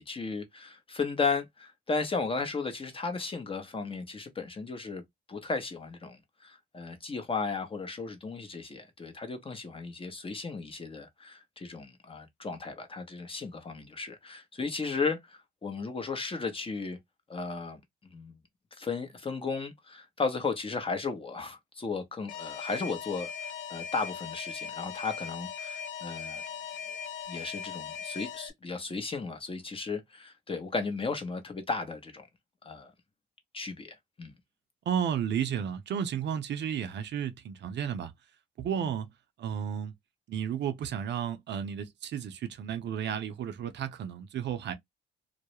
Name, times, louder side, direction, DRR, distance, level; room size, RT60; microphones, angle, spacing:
voice 1, 0.0-17.0 17.3-18.4 18.7-26.4 27.3-32.3 32.6-32.9 33.5-34.3 38.8-38.9, left 4 dB, 25° left, 0.8 m, -35 dB
Alarm, 22.3-28.5, left 7 dB, 80° left, 0.5 m, -39 dB
voice 2, 34.9-38.1 38.6-39.1 39.4-39.9 40.3-44.7, right 8 dB, 60° right, 0.5 m, -33 dB
2.3 x 2.0 x 2.9 m
cardioid pair, 90°, 20 cm